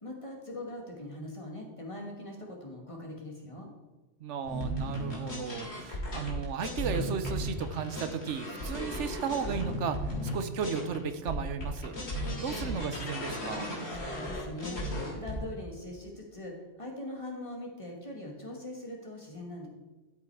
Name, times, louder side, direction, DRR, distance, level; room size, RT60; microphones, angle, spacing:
voice 1, 0.0-3.7 13.9-19.7, left 1 dB, 25° left, 0 dB, 1.8 m, -41 dB
voice 2, 4.2-11.9 12.4-13.7, right 6 dB, 85° right, 10 dB, 1.1 m, -35 dB
sound 1, 4.4-11.0 11.3-15.4, equal, 65° left, 2.8 m, -35 dB
12.0 x 5.7 x 4.7 m, 1.2 s
omnidirectional pair, 1.2 m